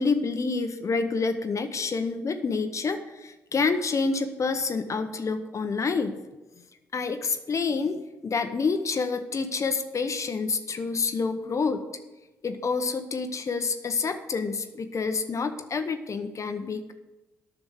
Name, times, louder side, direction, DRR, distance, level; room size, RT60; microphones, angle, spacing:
voice 1, 0.0-6.1 6.9-11.8 12.4-16.9, left 4 dB, 40° left, 8 dB, 0.9 m, -28 dB
9.7 x 6.1 x 8.0 m, 1.1 s
hypercardioid pair, 45°, 8 cm